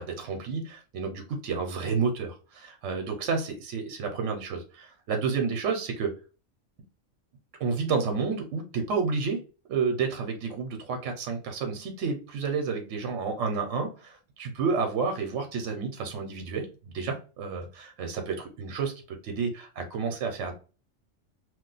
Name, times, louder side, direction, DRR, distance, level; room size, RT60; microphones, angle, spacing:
voice 1, 0.0-6.1 7.6-9.4 9.7-18.9 19.2-20.5, right 5 dB, 75° right, 5 dB, 1.0 m, -30 dB
2.4 x 2.2 x 3.8 m, 0.34 s
omnidirectional pair, 1.3 m